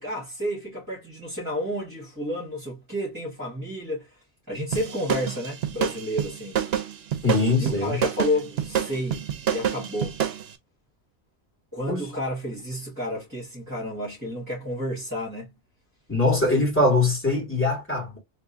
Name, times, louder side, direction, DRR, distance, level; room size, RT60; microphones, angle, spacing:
voice 1, 0.0-4.2 4.5-6.6 7.6-10.2 11.7-15.5, left 1 dB, 15° right, 1.9 m, -31 dB
sound 1, 4.7-10.5, right 9 dB, 65° right, 0.9 m, -28 dB
voice 2, 7.2-8.0 11.9-12.1 16.1-18.2, left 2 dB, 10° left, 2.3 m, -22 dB
3.6 x 2.8 x 2.5 m
omnidirectional pair, 1.1 m